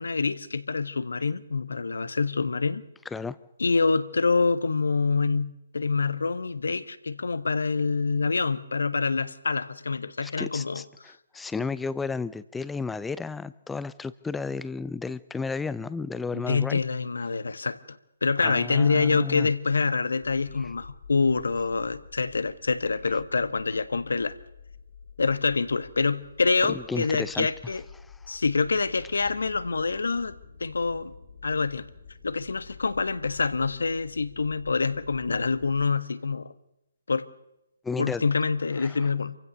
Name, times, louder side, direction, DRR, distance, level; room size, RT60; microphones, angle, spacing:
voice 1, 0.0-2.8 3.6-10.8 16.3-24.4 25.2-27.8 28.3-30.3 30.6-31.1 31.4-31.9 32.2-36.5 37.1-37.2 38.0-39.4, left 4 dB, 70° left, 14 dB, 1.3 m, -26 dB
voice 2, 10.2-16.8 18.4-19.5 20.6-20.7 26.7-27.5 28.0-28.4 29.2-29.3 37.8-38.2 38.8-39.0, left 4 dB, 5° left, 16 dB, 0.7 m, -33 dB
sound 1, 20.2-35.8, left 6 dB, 50° left, 3.9 m, -49 dB
27.0 x 15.5 x 6.7 m, 0.86 s
figure-of-eight pair, 140°, 0 cm